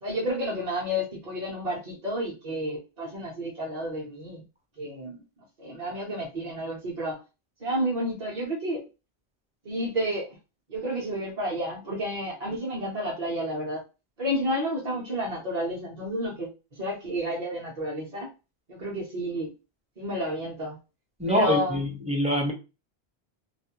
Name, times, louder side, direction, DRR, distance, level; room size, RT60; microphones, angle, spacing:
voice 1, 0.0-4.4 4.8-5.2 5.6-7.2 7.6-8.8 9.6-10.4 10.7-13.8 14.2-18.3 18.7-19.5 20.0-20.8 21.3-21.8, equal, 45° right, 0.8 m, -31 dB
voice 2, 21.2-22.5, equal, 10° right, 0.4 m, -25 dB
2.4 x 2.1 x 2.9 m
omnidirectional pair, 1.1 m